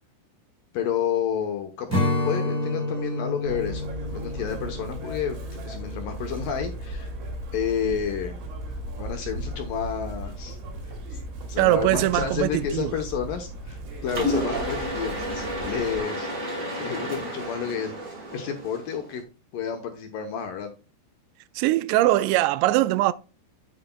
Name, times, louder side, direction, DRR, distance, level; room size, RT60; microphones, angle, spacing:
voice 1, 0.7-7.1 7.5-8.4 9.0-10.6 10.8-11.2 11.5-17.9 18.3-19.2 19.5-20.7, left 7 dB, 75° left, 2.1 m, -30 dB
Strum, 1.9-7.3, left 1 dB, 5° right, 4.1 m, -30 dB
Chirp tweet, 3.5-16.0, right 1 dB, 70° right, 4.3 m, -36 dB
voice 2, 11.6-12.9 21.6-23.1, right 16 dB, 90° right, 2.8 m, -21 dB
Mechanisms, 14.1-19.2, equal, 45° right, 1.0 m, -31 dB
9.3 x 8.1 x 2.2 m
omnidirectional pair, 5.0 m